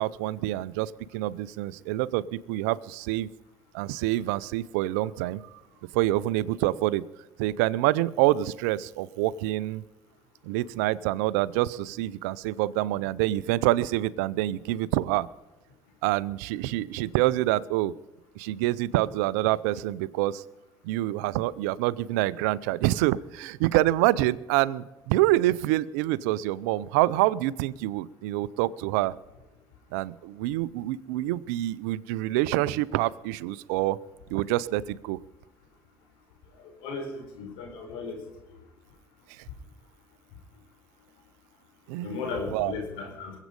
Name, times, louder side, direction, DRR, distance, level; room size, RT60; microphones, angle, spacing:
voice 1, 0.0-3.3 3.7-5.5 5.9-7.0 7.4-9.8 10.4-15.3 16.0-17.9 18.4-20.4 20.8-29.1 29.9-34.0 34.3-35.2 39.3-39.4 41.9-42.7, right 16 dB, 85° right, 18 dB, 0.5 m, -26 dB
voice 2, 36.8-38.2 42.0-43.3, left 4 dB, 75° left, 2 dB, 4.4 m, -35 dB
22.0 x 8.3 x 5.3 m, 1.0 s
supercardioid pair, 70°, 9 cm